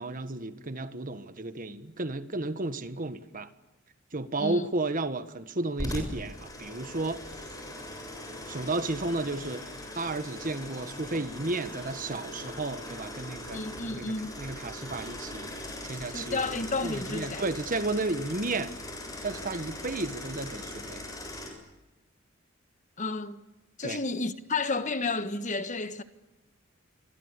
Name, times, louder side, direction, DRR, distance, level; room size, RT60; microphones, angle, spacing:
voice 1, 0.0-3.5 4.1-7.2 8.5-13.6 13.9-15.5 15.8-18.7 19.2-21.0 23.8-24.0, right 2 dB, 40° right, 1.5 m, -33 dB
sound 1, 5.8-21.5, left 1 dB, 20° left, 7.5 m, -40 dB
voice 2, 13.5-14.4 16.1-17.4 23.0-23.4 23.8-26.0, left 3 dB, 35° left, 1.4 m, -31 dB
28.0 x 24.5 x 8.3 m
head